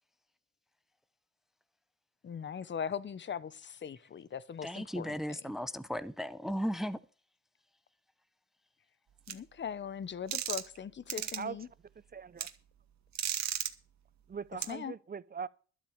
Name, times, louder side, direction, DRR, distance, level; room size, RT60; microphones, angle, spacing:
voice 1, 2.2-5.5 9.3-11.7 14.7-14.9, left 7 dB, 40° left, 0.9 m, -40 dB
voice 2, 4.6-7.0, equal, ahead, 0.9 m, -36 dB
sound 1, 9.3-9.4 10.3-10.8 11.1-11.4 12.4-12.5 13.1-13.7 14.6-14.7, right 9 dB, 65° right, 2.0 m, -34 dB
voice 3, 11.1-11.6 12.1-12.5 14.3-15.5, right 6 dB, 30° right, 0.8 m, -41 dB
12.0 x 8.3 x 7.1 m
cardioid pair, 90°, 30 cm